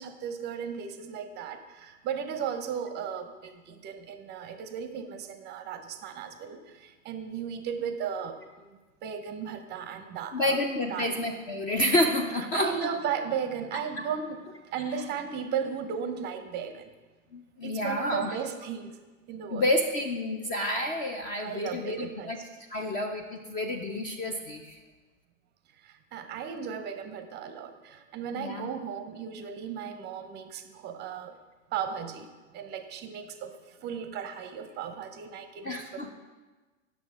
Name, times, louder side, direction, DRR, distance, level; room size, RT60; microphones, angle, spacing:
voice 1, 0.0-10.6 10.9-11.2 12.3-14.4 14.7-16.9 17.6-19.0 19.3-19.7 21.4-22.3 25.8-31.3 31.7-35.8, right 7 dB, 25° right, 9 dB, 0.6 m, -36 dB
voice 2, 10.3-12.9 17.3-18.3 19.5-22.4 22.7-24.8 28.3-28.7 35.6-36.1, left 1 dB, 20° left, 4 dB, 0.4 m, -29 dB
8.5 x 6.2 x 4.7 m, 1.3 s
hypercardioid pair, 110°, 41 cm